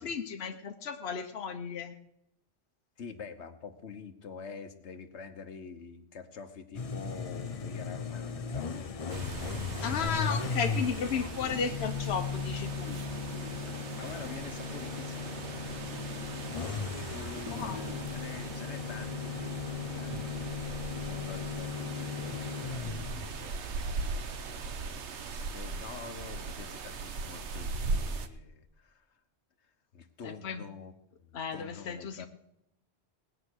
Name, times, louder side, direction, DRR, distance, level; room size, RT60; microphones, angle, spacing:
voice 1, 0.0-1.9 9.8-12.9 17.4-18.0 30.2-30.6 31.3-32.3, left 6 dB, 70° left, 6 dB, 1.1 m, -34 dB
voice 2, 3.0-10.4 11.2-11.3 12.8-16.1 17.1-29.2 29.6-30.9 31.2-32.3, left 5 dB, 85° left, 8 dB, 1.3 m, -47 dB
sound 1, 6.7-23.6, left 5 dB, 40° left, 0.7 m, -37 dB
sound 2, 9.1-28.3, right 4 dB, 90° right, 1.2 m, -39 dB
19.0 x 8.9 x 6.3 m, 0.80 s
omnidirectional pair, 1.1 m